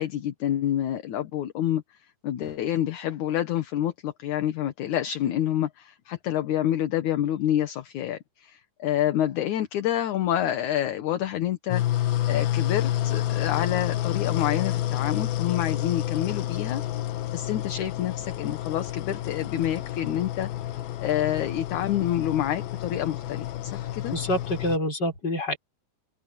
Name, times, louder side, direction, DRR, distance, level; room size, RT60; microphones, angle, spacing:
voice 1, 0.0-1.8 2.2-11.8 12.3-16.8 17.3-20.5 21.0-24.1, left 11 dB, 65° left, 2.5 m, -28 dB
sound 1, 11.7-24.8, left 12 dB, 85° left, 3.0 m, -29 dB
voice 2, 24.1-25.6, left 1 dB, 25° left, 6.7 m, -27 dB
open air
omnidirectional pair, 4.2 m